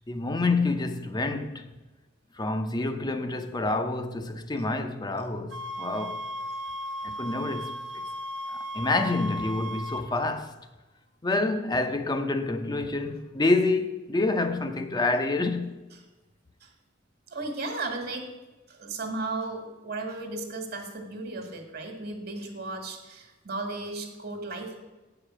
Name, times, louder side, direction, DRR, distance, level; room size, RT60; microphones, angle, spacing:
voice 1, 0.1-1.7 2.4-6.3 7.0-7.7 8.5-10.5 11.2-15.7, left 2 dB, 20° left, 0.6 m, -27 dB
sound 1, 5.5-10.1, equal, 75° right, 0.9 m, -36 dB
voice 2, 17.3-18.3 18.7-24.8, right 2 dB, 55° right, 1.5 m, -35 dB
8.3 x 5.0 x 7.4 m
head